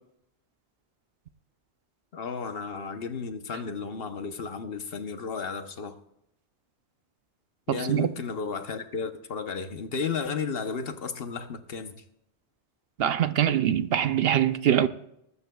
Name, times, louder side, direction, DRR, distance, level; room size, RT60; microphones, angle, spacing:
voice 1, 2.1-6.0 7.7-12.0, left 5 dB, 60° left, 1.0 m, -33 dB
voice 2, 7.7-8.1 13.0-14.9, right 10 dB, 65° right, 0.8 m, -23 dB
20.5 x 12.5 x 2.3 m
omnidirectional pair, 1.1 m